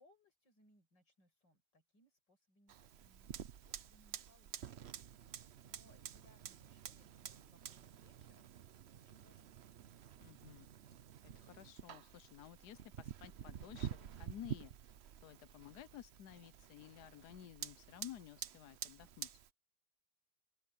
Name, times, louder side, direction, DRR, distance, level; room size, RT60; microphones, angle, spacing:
voice 1, 0.0-3.4 3.7-5.0 5.2-8.5 8.9-9.6, left 1 dB, 85° left, 7.6 m, -71 dB
Fire, 2.7-19.5, right 9 dB, 55° right, 0.7 m, -50 dB
voice 2, 10.2-10.7 11.2-19.3, left 11 dB, 70° left, 1.3 m, -54 dB
open air
omnidirectional pair, 1.9 m